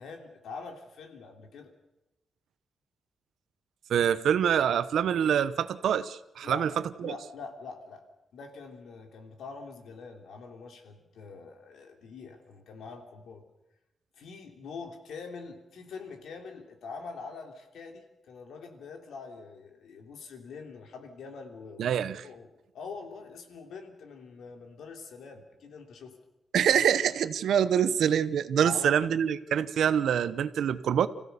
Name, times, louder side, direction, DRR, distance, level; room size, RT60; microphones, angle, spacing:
voice 1, 0.0-1.7 6.4-6.7 7.0-8.0 8.3-13.4 14.2-21.9 22.2-26.1 28.6-29.1, left 4 dB, 85° left, 4 dB, 3.1 m, -44 dB
voice 2, 3.9-6.7 7.0-7.1 21.8-22.3 26.5-31.1, right 8 dB, 85° right, 14 dB, 0.9 m, -25 dB
26.5 x 16.0 x 6.8 m, 0.94 s
wide cardioid pair, 175°, 0 cm